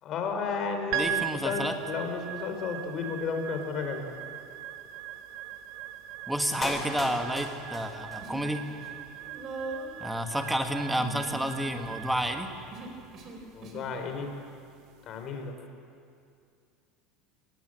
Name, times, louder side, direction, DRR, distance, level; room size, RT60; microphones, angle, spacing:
voice 1, 0.0-4.1 13.5-14.3 15.1-15.5, left 5 dB, 45° left, 5 dB, 4.1 m, -33 dB
voice 2, 0.9-1.7 6.3-8.6 10.0-12.5, equal, 5° right, 5 dB, 1.8 m, -30 dB
sound 1, 0.9-15.3, right 11 dB, 65° right, 1.2 m, -40 dB
Human voice, 6.5-7.4 7.7-8.5 8.7-13.9, right 3 dB, 40° right, 4.3 m, -42 dB
Clapping, 6.6-8.6 8.9-9.0, left 3 dB, 25° left, 3.6 m, -38 dB
25.5 x 19.5 x 7.8 m, 2.4 s
supercardioid pair, 135°, 0 cm